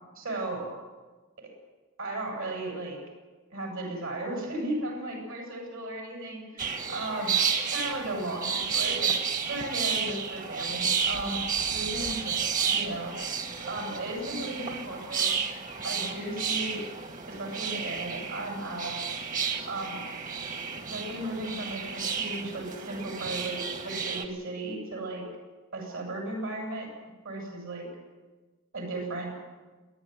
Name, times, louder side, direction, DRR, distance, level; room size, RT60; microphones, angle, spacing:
voice 1, 0.1-0.8 2.0-3.0 3.5-7.3 7.7-9.1 9.5-11.4 11.7-13.1 13.6-15.4 15.8-16.8 17.3-19.0 19.7-20.0 20.9-23.6 23.8-25.3 25.7-26.9 27.2-27.9 28.7-29.3, right 2 dB, 70° right, 0 dB, 7.9 m, -35 dB
sound 1, 6.6-24.3, right 6 dB, 40° right, 1.6 m, -31 dB
28.0 x 11.0 x 9.6 m, 1.3 s
head